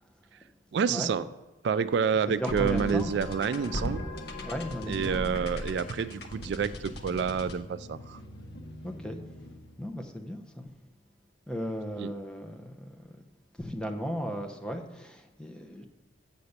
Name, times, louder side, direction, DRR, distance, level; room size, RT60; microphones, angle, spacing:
voice 1, 0.7-1.3 1.6-4.0 4.9-8.2 12.0-12.1, right 6 dB, 65° right, 14 dB, 0.3 m, -28 dB
voice 2, 2.3-3.1 4.4-5.4 8.8-9.5 9.8-10.7 11.5-13.2 13.6-15.9, equal, 5° left, 4 dB, 0.7 m, -36 dB
sound 1, 2.5-9.8, left 1 dB, 60° left, 1.0 m, -38 dB
6.9 x 6.8 x 6.6 m, 1.1 s
head